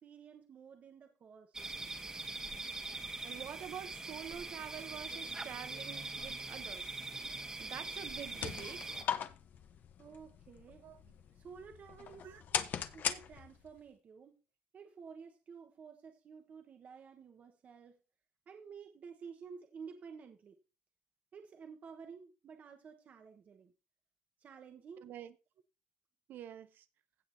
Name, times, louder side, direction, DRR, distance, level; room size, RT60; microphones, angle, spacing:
voice 1, 0.0-1.6 10.0-10.9 11.4-12.4 12.9-14.3 14.7-18.0 18.5-20.6 21.3-23.7 24.4-25.1, right 6 dB, 45° right, 1.2 m, -52 dB
sound 1, 1.5-9.0, right 3 dB, 20° right, 1.3 m, -42 dB
voice 2, 3.2-7.0 7.6-8.8 10.8-11.1 12.2-12.4 25.0-25.3 26.3-26.8, right 10 dB, 65° right, 0.8 m, -47 dB
sound 2, 8.1-13.8, left 8 dB, 55° left, 1.0 m, -40 dB
16.5 x 6.0 x 2.8 m
cardioid pair, 100°, 4 cm